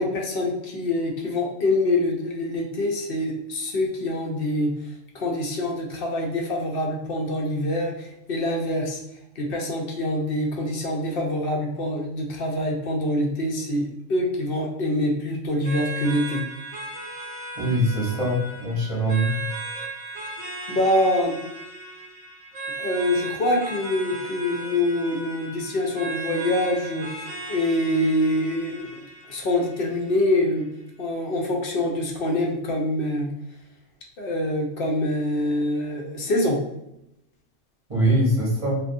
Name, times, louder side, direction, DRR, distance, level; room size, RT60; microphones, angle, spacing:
voice 1, 0.0-9.0 9.4-16.4 20.7-21.4 22.8-30.7 31.0-33.3 34.2-36.6, left 1 dB, 60° left, 0 dB, 0.6 m, -25 dB
sound 1, 15.6-30.6, right 3 dB, 70° right, 0.9 m, -36 dB
voice 2, 17.6-19.3 37.9-38.8, right 1 dB, 30° right, -4 dB, 0.7 m, -22 dB
2.4 x 2.2 x 2.5 m, 0.83 s
omnidirectional pair, 1.3 m